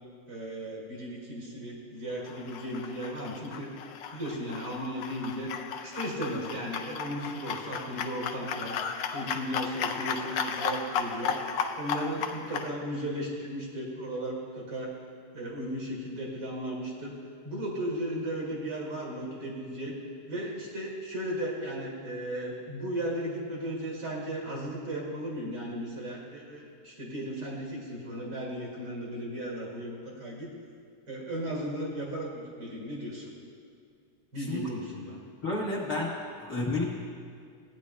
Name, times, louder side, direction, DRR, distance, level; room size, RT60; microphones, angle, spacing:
voice 1, 0.3-3.7 4.1-5.5 5.8-8.8 9.1-11.4 11.8-14.9 15.3-17.2 17.4-20.0 20.3-30.5 31.1-33.3 34.3-35.2, right 1 dB, 65° right, -3 dB, 2.8 m, -35 dB
sound 1, 2.2-12.7, left 6 dB, 75° left, 1.1 m, -35 dB
voice 2, 35.4-36.8, left 2 dB, 50° left, -4 dB, 1.4 m, -31 dB
16.5 x 9.7 x 2.2 m, 2.3 s
omnidirectional pair, 2.4 m